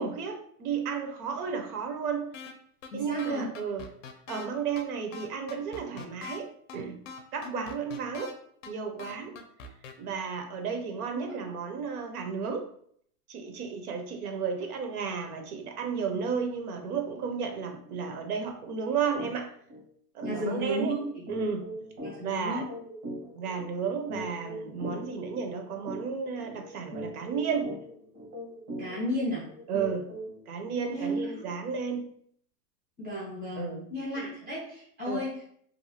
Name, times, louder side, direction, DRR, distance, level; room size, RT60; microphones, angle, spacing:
voice 1, 0.0-2.3 2.9-3.9 4.3-7.0 7.3-8.3 8.7-9.3 10.0-12.7 13.3-19.5 20.1-21.0 21.3-21.7 22.2-22.7 23.3-27.7 29.7-30.0 30.5-32.1 33.6-33.8 34.2-34.3 35.1-35.2, right 6 dB, 70° right, 4 dB, 0.7 m, -33 dB
sound 1, 2.3-2.5 2.8-2.9 3.2-4.5 4.8-4.9 5.1-6.4 6.7-6.8 7.1-8.3 8.6-8.7 9.0-9.9, left 5 dB, 55° left, 0.5 m, -42 dB
voice 2, 2.9-3.5 7.4-7.7 11.1-11.4 16.1-16.2 20.2-21.2 22.0-22.7 28.8-29.5 30.9-31.4 33.0-35.4, equal, 10° right, -9 dB, 0.4 m, -34 dB
sound 2, 19.2-19.3 19.7-19.8 20.2-30.4, equal, 90° right, 1.3 m, -41 dB
2.7 x 2.4 x 2.7 m, 0.64 s
hypercardioid pair, 160°, 47 cm